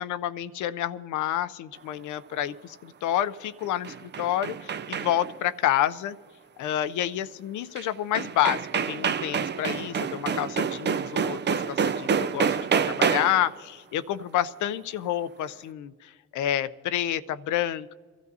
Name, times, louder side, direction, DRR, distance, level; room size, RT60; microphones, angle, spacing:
voice 1, 0.0-6.2 6.6-12.6 12.9-17.9, left 11 dB, 65° left, 13 dB, 0.6 m, -29 dB
sound 1, 3.6-5.4 7.8-7.9 8.1-13.5, right 6 dB, 35° right, 0.5 m, -27 dB
24.0 x 13.5 x 2.7 m, 1.5 s
supercardioid pair, 70°, 32 cm